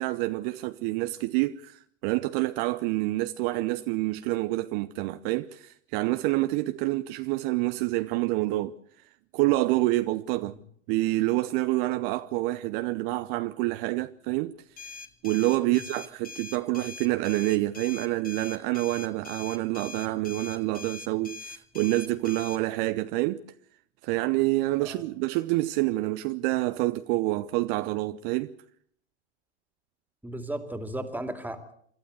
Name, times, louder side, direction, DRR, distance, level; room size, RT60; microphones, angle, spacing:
voice 1, 0.0-8.7 9.3-10.5 10.9-14.6 15.2-23.4 24.0-28.6, right 19 dB, 50° right, 0.8 m, -27 dB
sound 1, 14.8-22.6, left 3 dB, 25° left, 1.9 m, -42 dB
voice 2, 30.2-31.7, right 1 dB, 5° right, 2.5 m, -35 dB
27.0 x 12.5 x 8.1 m
hypercardioid pair, 85°, 35 cm